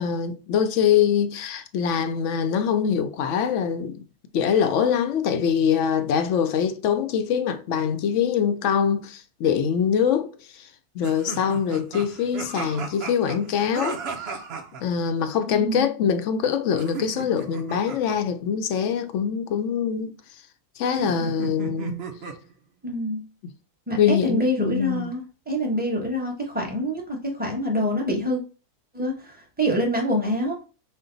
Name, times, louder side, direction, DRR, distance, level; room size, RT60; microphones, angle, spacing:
voice 1, 0.0-4.0 4.3-10.7 10.9-14.3 14.8-20.2 20.8-22.0 23.4-23.5 24.0-25.1, left 7 dB, 70° left, 0.8 m, -24 dB
sound 1, 11.0-14.8 16.7-18.2 21.0-22.5, right 4 dB, 55° right, 0.8 m, -35 dB
voice 2, 15.5-15.9 22.8-23.2 23.9-28.4 28.9-30.5, equal, 5° right, 0.9 m, -26 dB
5.3 x 2.2 x 3.8 m
omnidirectional pair, 1.6 m